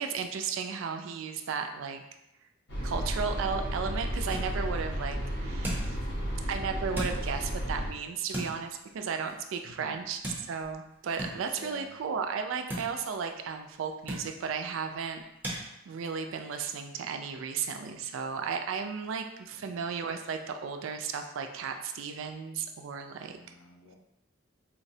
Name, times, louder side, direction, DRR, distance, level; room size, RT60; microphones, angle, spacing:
voice 1, 0.0-2.0 2.8-6.0 6.5-23.4, right 6 dB, 75° right, 6 dB, 0.3 m, -35 dB
sound 1, 2.7-7.9, equal, 65° left, 0.9 m, -33 dB
sound 2, 4.0-15.6, right 1 dB, 10° right, 0.6 m, -43 dB
voice 2, 9.6-10.0 11.5-12.0 19.5-19.8 23.3-24.0, left 3 dB, 80° left, 3 dB, 0.5 m, -49 dB
4.3 x 2.0 x 2.7 m, 0.86 s
head